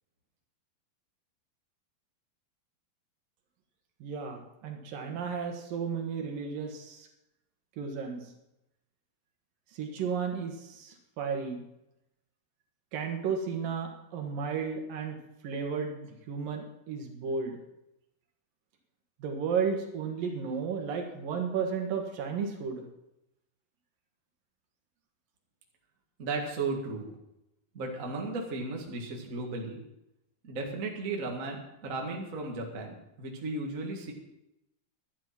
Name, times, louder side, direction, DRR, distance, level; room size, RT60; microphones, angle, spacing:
voice 1, 4.0-7.1 7.8-8.2 9.8-11.6 12.9-15.2 15.4-17.6 19.2-22.8, right 6 dB, 70° right, 3 dB, 3.1 m, -33 dB
voice 2, 26.2-27.1 27.7-29.8 30.4-34.1, right 3 dB, 35° right, 1 dB, 1.4 m, -35 dB
11.5 x 11.0 x 5.9 m, 0.88 s
omnidirectional pair, 4.3 m